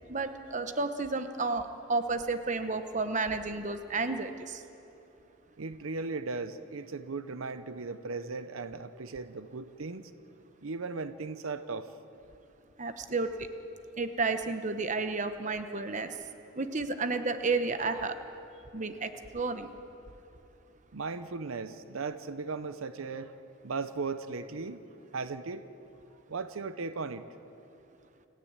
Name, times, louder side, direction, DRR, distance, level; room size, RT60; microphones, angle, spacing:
voice 1, 0.1-4.6 12.8-13.5 14.0-16.1 16.6-18.1 18.7-19.7, right 3 dB, 35° right, 9 dB, 0.9 m, -31 dB
voice 2, 5.6-10.1 10.6-11.9 20.9-23.4 23.6-24.8 25.1-25.6 26.3-27.2, right 4 dB, 80° right, 12 dB, 0.7 m, -37 dB
29.0 x 10.5 x 8.9 m, 2.9 s
head